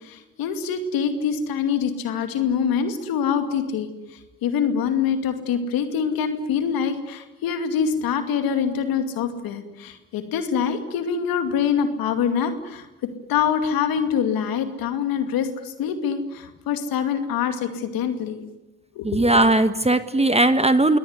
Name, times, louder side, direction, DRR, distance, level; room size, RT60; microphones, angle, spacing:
voice 1, 0.0-3.9 4.4-12.9 13.3-18.4 19.0-19.3, left 7 dB, 85° left, 8 dB, 2.5 m, -25 dB
voice 2, 19.0-21.0, right 2 dB, 20° right, 11 dB, 1.6 m, -18 dB
24.0 x 18.5 x 9.6 m, 1.0 s
supercardioid pair, 50°, 35 cm